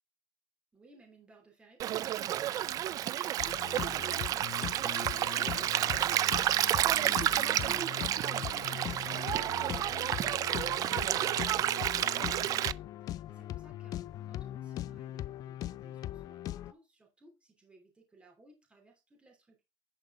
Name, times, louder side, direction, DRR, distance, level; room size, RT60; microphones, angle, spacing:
voice 1, 0.7-19.6, right 1 dB, 10° right, 3.0 m, -58 dB
Stream, 1.8-12.7, right 12 dB, 40° right, 0.4 m, -30 dB
sound 1, 3.4-16.7, left 13 dB, 45° left, 0.4 m, -40 dB
10.5 x 5.0 x 3.7 m
cardioid pair, 160°, 9 cm